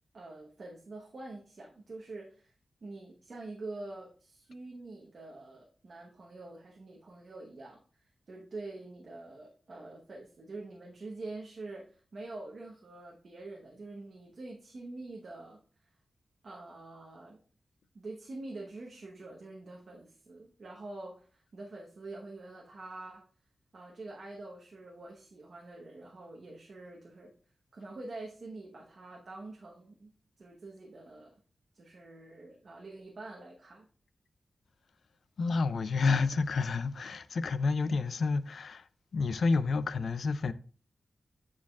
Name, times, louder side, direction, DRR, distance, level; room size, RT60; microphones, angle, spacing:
voice 1, 0.1-2.5 2.8-15.6 16.4-17.4 17.9-23.2 23.7-27.3 27.7-30.1 30.4-31.4 31.7-33.9, right 2 dB, 50° right, 1.0 m, -46 dB
voice 2, 35.4-38.9 39.1-40.5, left 4 dB, 70° left, 0.3 m, -29 dB
9.3 x 4.8 x 2.4 m
wide cardioid pair, 155°, 0 cm